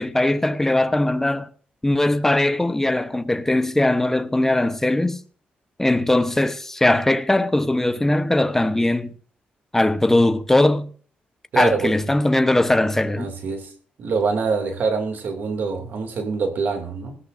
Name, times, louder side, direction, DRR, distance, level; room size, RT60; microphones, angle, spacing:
voice 1, 0.0-1.5 1.8-5.2 5.8-9.1 9.7-10.9 11.5-13.3, left 1 dB, 10° left, 1.0 m, -20 dB
voice 2, 11.5-12.1 13.2-13.7 14.0-17.2, right 4 dB, 70° right, 2.6 m, -25 dB
19.5 x 15.5 x 2.6 m
cardioid pair, 95°, 3 cm